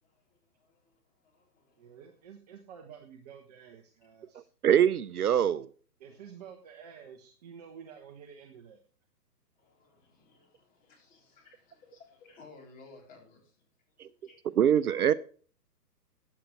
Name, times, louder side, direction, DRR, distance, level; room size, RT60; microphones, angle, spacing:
voice 1, 0.0-2.0 4.3-4.4 6.1-6.4 9.6-13.6 14.0-14.6, left 3 dB, 15° left, 0 dB, 3.9 m, -58 dB
voice 2, 1.8-4.5 6.0-8.8, right 7 dB, 25° right, 3 dB, 1.0 m, -50 dB
voice 3, 4.6-5.7 14.0-14.1 14.6-15.1, right 9 dB, 65° right, 16 dB, 0.7 m, -23 dB
14.5 x 9.4 x 3.3 m, 0.42 s
hypercardioid pair, 150°, 50 cm